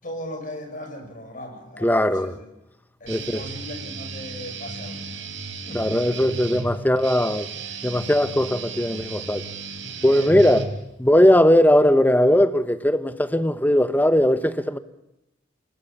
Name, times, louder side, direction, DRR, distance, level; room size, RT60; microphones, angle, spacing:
voice 1, 0.0-2.5 3.0-5.3 5.6-5.9 10.2-10.4, left 1 dB, 45° left, 6.3 m, -38 dB
voice 2, 1.8-2.4 3.1-3.4 5.7-7.5 7.8-9.4 10.0-10.7 11.0-14.8, left 1 dB, 10° left, 1.0 m, -19 dB
Guitar, 3.1-11.1, right 4 dB, 70° right, 4.2 m, -34 dB
28.5 x 18.5 x 7.1 m
head